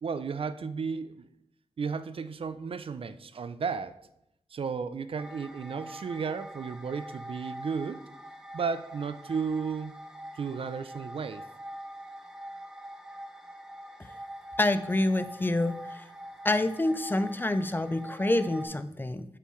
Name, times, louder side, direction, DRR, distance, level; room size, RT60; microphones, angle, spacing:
voice 1, 0.0-1.3 1.8-4.0 4.5-8.0 8.5-9.9 10.4-11.4, right 5 dB, 55° right, 13 dB, 0.4 m, -33 dB
sound 1, 5.2-18.7, right 1 dB, 5° right, 0.8 m, -44 dB
voice 2, 14.6-16.0 16.4-19.3, left 1 dB, 20° left, 11 dB, 0.4 m, -27 dB
8.2 x 5.4 x 3.1 m, 0.80 s
wide cardioid pair, 75°, 11 cm